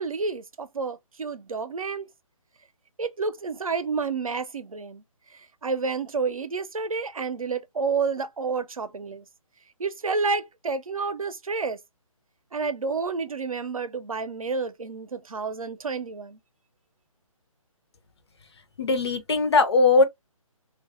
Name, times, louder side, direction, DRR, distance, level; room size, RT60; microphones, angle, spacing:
voice 1, 0.0-2.1 3.0-5.0 5.3-9.2 9.8-11.8 12.5-16.4, right 4 dB, 70° right, 0.6 m, -30 dB
voice 2, 18.8-20.0, left 3 dB, 50° left, 0.7 m, -20 dB
2.6 x 2.3 x 2.4 m
figure-of-eight pair, 140°, 18 cm